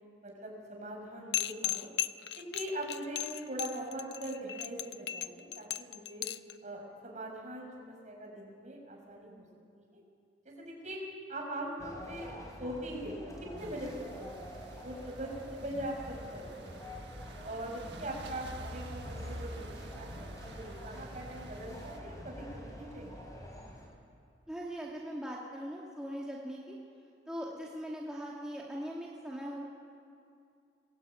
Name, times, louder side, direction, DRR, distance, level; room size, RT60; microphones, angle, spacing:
voice 1, 0.2-1.9 2.4-6.2 6.6-9.4 9.7-10.0 10.4-11.0 11.3-13.1 13.5-13.9 14.2-16.8 17.4-23.3, right 1 dB, 45° right, 0 dB, 6.5 m, -42 dB
sound 1, 1.3-6.5, left 12 dB, 65° left, 0.6 m, -36 dB
sound 2, 11.8-23.9, equal, 20° left, 5.1 m, -46 dB
sound 3, 13.6-22.0, right 1 dB, 80° right, 1.4 m, -49 dB
voice 2, 24.5-26.8 27.3-29.6, equal, 5° right, -4 dB, 2.2 m, -40 dB
23.5 x 20.0 x 9.1 m, 2.4 s
head